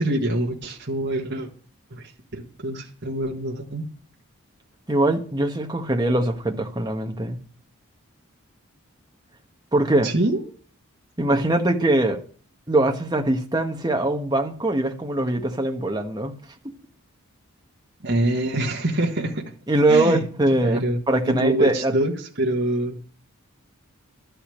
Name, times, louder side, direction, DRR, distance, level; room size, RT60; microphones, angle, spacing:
voice 1, 0.0-1.5 1.9-2.0 2.3-3.8 10.0-10.5 18.0-19.4 19.9-20.2 20.6-23.0, right 1 dB, 50° right, 1.7 m, -25 dB
voice 2, 4.9-7.4 9.7-10.1 11.2-12.2 12.7-16.3 16.6-16.7 19.7-21.9, right 1 dB, 20° right, 1.3 m, -22 dB
12.5 x 5.7 x 8.5 m
head